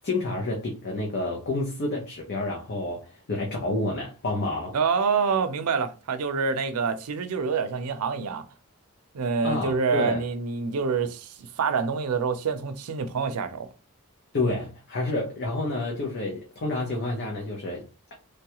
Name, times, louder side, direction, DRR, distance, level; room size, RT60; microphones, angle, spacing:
voice 1, 0.0-4.8 9.4-10.2 14.3-18.1, left 2 dB, 50° left, 0.6 m, -29 dB
voice 2, 4.7-8.5 9.1-13.7, right 5 dB, 85° right, 0.5 m, -26 dB
3.2 x 2.3 x 2.9 m
head